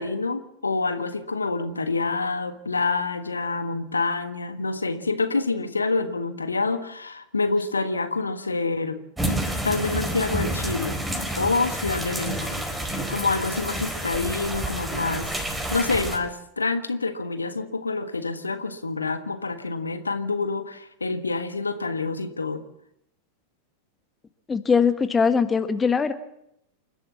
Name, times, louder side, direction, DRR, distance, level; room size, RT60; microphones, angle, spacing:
voice 1, 0.0-9.0 9.6-11.0 11.4-12.6 13.1-15.3 15.7-22.6, left 3 dB, 80° left, 9 dB, 1.5 m, -27 dB
sound 1, 9.2-16.2, right 1 dB, 10° right, 4.9 m, -29 dB
voice 2, 24.5-26.1, left 5 dB, 15° left, 9 dB, 1.4 m, -21 dB
28.5 x 12.5 x 7.4 m, 0.81 s
figure-of-eight pair, 90°, 0 cm